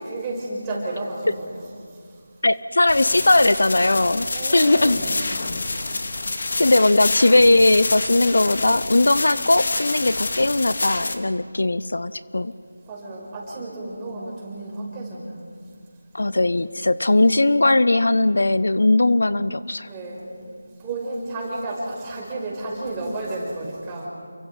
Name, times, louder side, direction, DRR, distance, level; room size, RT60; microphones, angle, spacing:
voice 1, 0.0-1.6 4.3-5.2 5.9-6.0 12.9-15.4 19.9-20.3 20.8-24.1, right 2 dB, 15° right, -5 dB, 5.6 m, -32 dB
voice 2, 2.4-4.3 4.5-5.0 6.6-12.5 16.1-19.9, left 2 dB, 75° left, 15 dB, 0.8 m, -19 dB
sound 1, 2.9-11.1, left 3 dB, 55° left, 2.1 m, -27 dB
30.0 x 23.5 x 5.1 m, 2.2 s
figure-of-eight pair, 170°, 0 cm